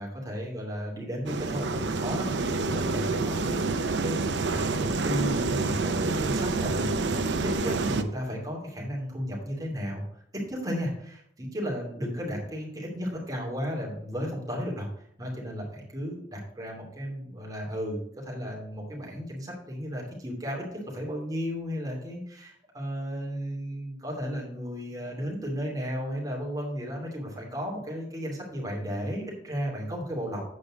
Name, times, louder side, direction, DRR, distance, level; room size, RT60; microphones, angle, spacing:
voice 1, 0.0-10.0 10.3-14.9 15.2-30.4, equal, 20° right, -2 dB, 2.7 m, -34 dB
sound 1, 1.2-8.0, right 3 dB, 75° right, 0.7 m, -28 dB
8.3 x 5.2 x 6.2 m, 0.68 s
head